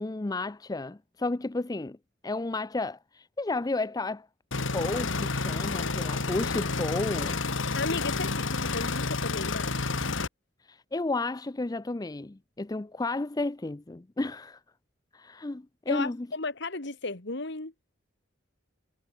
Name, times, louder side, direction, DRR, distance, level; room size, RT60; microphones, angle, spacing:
voice 1, 0.0-2.0 2.2-4.3 4.7-7.4 10.6-14.6 15.1-16.3, left 2 dB, 20° left, 0.5 m, -32 dB
sound 1, 4.5-10.3, left 3 dB, 75° left, 1.9 m, -30 dB
voice 2, 7.7-9.9 15.9-17.7, left 3 dB, 60° left, 2.2 m, -34 dB
head